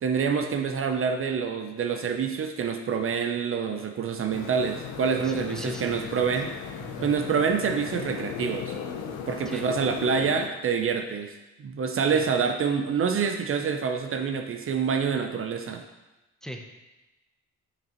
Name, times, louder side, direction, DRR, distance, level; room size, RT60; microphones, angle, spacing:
voice 1, 0.0-6.5 7.0-8.7 9.3-11.3 11.6-15.8, right 6 dB, 45° right, 5 dB, 0.6 m, -27 dB
sound 1, 4.3-10.5, left 6 dB, 85° left, 0.7 m, -37 dB
voice 2, 5.2-6.3 6.8-7.1 9.4-9.6 12.1-12.2 16.4-16.7, equal, ahead, 2 dB, 0.7 m, -39 dB
6.7 x 5.9 x 3.0 m, 1.0 s
cardioid pair, 90°, 30 cm